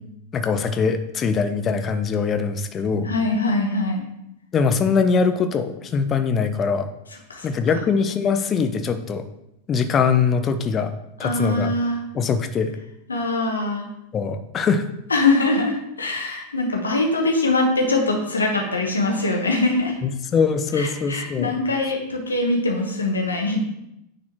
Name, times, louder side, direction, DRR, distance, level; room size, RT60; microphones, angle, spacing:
voice 1, 0.3-3.1 4.5-6.9 7.4-9.3 9.7-10.9 11.2-11.7 12.1-12.7 14.1-14.9 20.0-21.5, left 5 dB, 25° left, 9 dB, 0.6 m, -22 dB
voice 2, 2.9-4.1 7.3-7.9 11.2-12.0 13.1-13.9 15.1-20.0 20.7-23.6, left 2 dB, 75° left, 1 dB, 1.3 m, -23 dB
9.5 x 4.1 x 2.9 m, 0.84 s
figure-of-eight pair, 90°, 0 cm